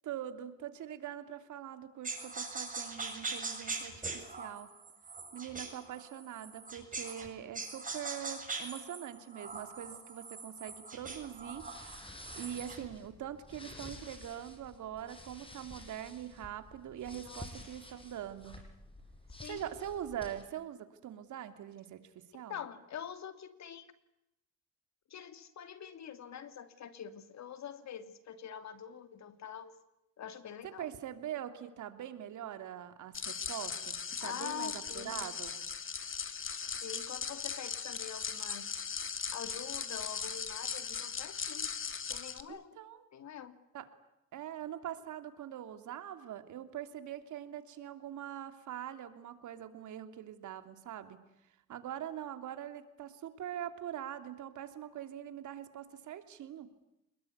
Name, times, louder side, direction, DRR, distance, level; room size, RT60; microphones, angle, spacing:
voice 1, 0.0-4.7 5.3-11.7 12.4-18.6 19.5-22.6 30.8-35.6 42.5-43.0 43.7-43.9 44.3-51.2 51.7-56.7, right 10 dB, 75° right, 9 dB, 3.0 m, -43 dB
sound 1, 2.0-7.3 7.5-12.9, right 4 dB, 25° right, 8.0 m, -42 dB
sound 2, 11.1-20.4, left 2 dB, 15° left, 6.7 m, -51 dB
voice 2, 17.2-17.6 19.4-19.7 22.5-23.9 25.1-29.8 30.2-30.9 34.2-35.3 36.8-38.7 39.3-41.7 42.1-42.8 43.1-43.6, left 8 dB, 65° left, 10 dB, 2.9 m, -45 dB
sound 3, 33.1-42.4, left 6 dB, 45° left, 2.5 m, -39 dB
28.0 x 21.0 x 9.7 m, 0.88 s
cardioid pair, 90°, 30 cm